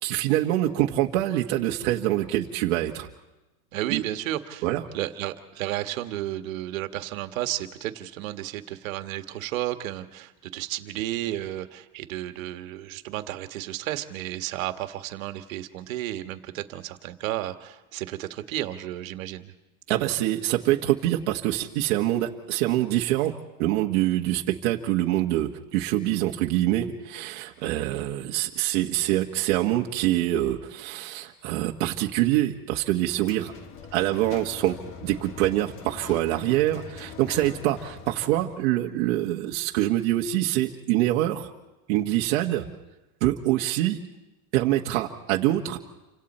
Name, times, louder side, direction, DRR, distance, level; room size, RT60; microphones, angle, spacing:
voice 1, 0.0-3.1 3.9-4.0 4.6-4.8 19.9-23.3 23.6-33.5 33.9-34.8 35.0-41.5 41.9-42.7 43.2-44.0 44.5-45.8, right 14 dB, 55° right, 1 dB, 1.5 m, -25 dB
voice 2, 3.7-4.7 4.9-19.5, right 14 dB, 80° right, 7 dB, 1.7 m, -32 dB
sound 1, 33.2-38.6, left 7 dB, 30° left, 1.2 m, -42 dB
29.0 x 25.5 x 4.4 m, 1.0 s
supercardioid pair, 155°, 40 cm